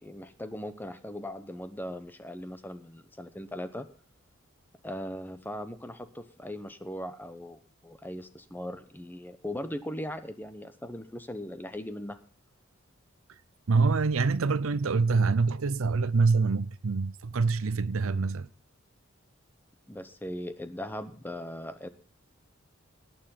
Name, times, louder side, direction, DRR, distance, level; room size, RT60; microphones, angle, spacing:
voice 1, 0.0-3.9 4.8-12.2 19.9-21.9, left 1 dB, 10° left, 0.9 m, -39 dB
voice 2, 13.7-18.5, right 4 dB, 80° right, 0.6 m, -25 dB
18.5 x 7.0 x 5.7 m
head